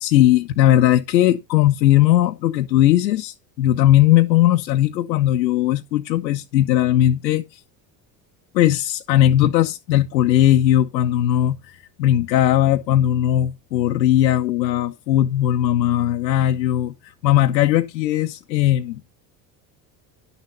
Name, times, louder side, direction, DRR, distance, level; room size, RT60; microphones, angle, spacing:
voice 1, 0.0-7.6 8.5-19.0, left 13 dB, 85° left, 0.7 m, -18 dB
11.0 x 6.6 x 4.2 m
hypercardioid pair, 70°, 50 cm